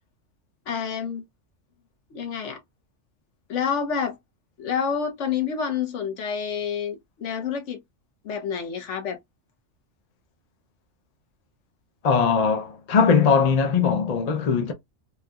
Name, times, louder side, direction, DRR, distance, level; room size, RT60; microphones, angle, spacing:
voice 1, 0.7-1.2 2.1-2.6 3.5-4.2 4.6-7.8 8.2-9.2, left 7 dB, 70° left, 1.1 m, -28 dB
voice 2, 12.0-14.7, left 6 dB, 45° left, 0.5 m, -20 dB
3.4 x 2.6 x 2.3 m
omnidirectional pair, 1.3 m